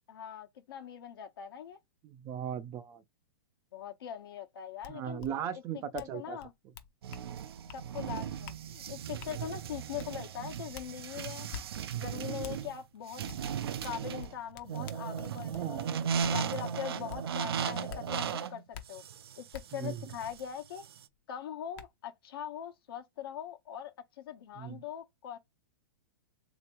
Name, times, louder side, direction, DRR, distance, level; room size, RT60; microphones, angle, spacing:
voice 1, 0.1-1.8 3.7-5.2 5.7-6.5 7.7-11.5 12.0-13.2 13.8-15.8 16.3-19.0 19.4-20.8 21.3-25.4, left 9 dB, 70° left, 1.1 m, -42 dB
voice 2, 2.0-3.0 4.9-6.4 15.4-15.9 19.7-20.0 24.6-24.8, right 9 dB, 25° right, 0.4 m, -38 dB
sound 1, 4.8-4.9 5.2-5.3 5.9-6.1 6.4-7.3 7.7-7.8 8.4-8.6 9.2-9.3 10.0-10.1 10.7-10.9 11.5-11.6 12.4-12.6 13.3-13.4 13.8-15.7 16.2-16.3 17.1-17.2 17.9-18.0 18.7-18.8 19.5-19.6 21.1-21.2 21.7-21.9, left 8 dB, 45° left, 0.7 m, -45 dB
sound 2, 7.0-21.0, right 7 dB, 75° right, 0.5 m, -37 dB
3.3 x 2.9 x 3.0 m
hypercardioid pair, 150°, 13 cm